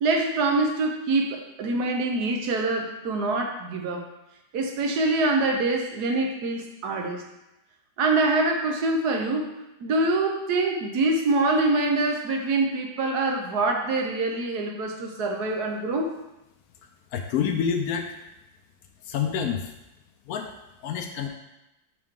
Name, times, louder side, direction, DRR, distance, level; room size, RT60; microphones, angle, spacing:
voice 1, 0.0-4.1 4.5-7.2 8.0-9.5 9.8-16.1, right 2 dB, 60° right, 2 dB, 1.2 m, -25 dB
voice 2, 17.1-18.1 19.0-19.7 20.3-20.5 20.8-21.3, left 7 dB, 80° left, 4 dB, 0.8 m, -27 dB
6.0 x 4.8 x 3.6 m, 0.92 s
omnidirectional pair, 2.1 m